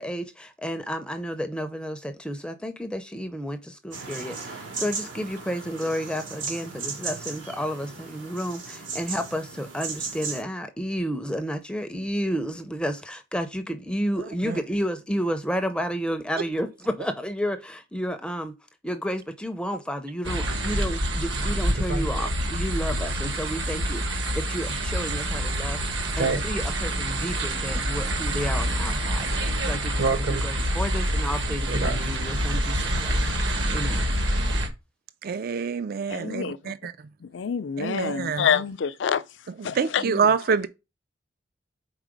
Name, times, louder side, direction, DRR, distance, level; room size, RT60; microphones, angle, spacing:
voice 1, 0.0-18.5 18.8-33.3 33.7-34.1 40.0-40.3, equal, 5° left, 0.5 m, -31 dB
sound 1, 3.9-10.4, right 4 dB, 85° right, 2.1 m, -36 dB
sound 2, 20.2-34.7, right 1 dB, 65° right, 1.2 m, -26 dB
voice 2, 35.2-36.9 37.8-38.5 39.6-40.7, right 6 dB, 50° right, 0.4 m, -26 dB
voice 3, 36.1-36.6 37.3-39.2 39.6-40.0, left 7 dB, 70° left, 0.4 m, -26 dB
4.8 x 4.1 x 5.1 m
head